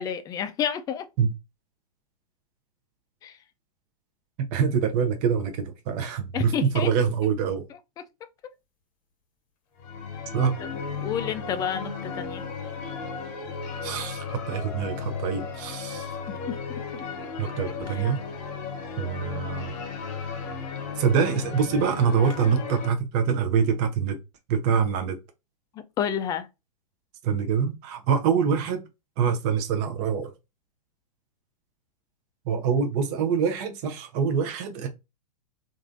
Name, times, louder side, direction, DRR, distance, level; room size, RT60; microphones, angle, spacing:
voice 1, 0.0-1.1 3.2-3.4 6.3-6.9 10.6-10.7 11.0-12.4 16.3-16.6 16.9-17.3 26.0-26.5, left 8 dB, 20° left, 0.4 m, -30 dB
voice 2, 4.5-7.7 10.3-10.6 13.8-16.2 17.4-18.2 19.0-19.8 21.0-24.2 24.5-25.2 27.2-28.8 29.2-30.3 32.5-34.9, right 6 dB, 40° right, 0.7 m, -25 dB
sound 1, 9.8-22.9, left 5 dB, 35° left, 0.8 m, -35 dB
3.0 x 2.6 x 2.5 m
hypercardioid pair, 110°, 20 cm